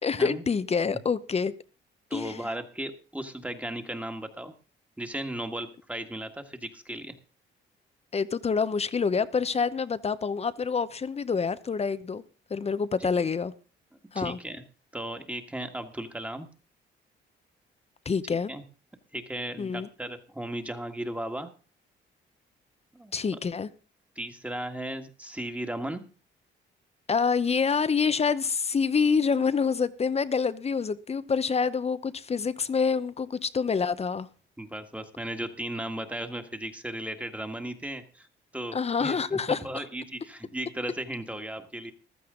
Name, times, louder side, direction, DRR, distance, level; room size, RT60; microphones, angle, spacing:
voice 1, 0.0-1.5 2.1-2.4 8.1-12.2 12.5-13.5 14.1-14.4 18.1-18.5 19.6-19.9 23.1-23.7 27.1-34.3 38.7-39.6, left 5 dB, 30° left, 0.8 m, -27 dB
voice 2, 2.1-4.5 5.0-7.1 13.0-13.1 14.2-14.6 14.9-16.5 18.5-18.6 19.1-21.5 22.9-23.1 24.2-26.0 34.6-38.3 38.5-41.9, right 1 dB, 5° right, 1.7 m, -36 dB
15.0 x 12.5 x 3.8 m
cardioid pair, 90°, 20 cm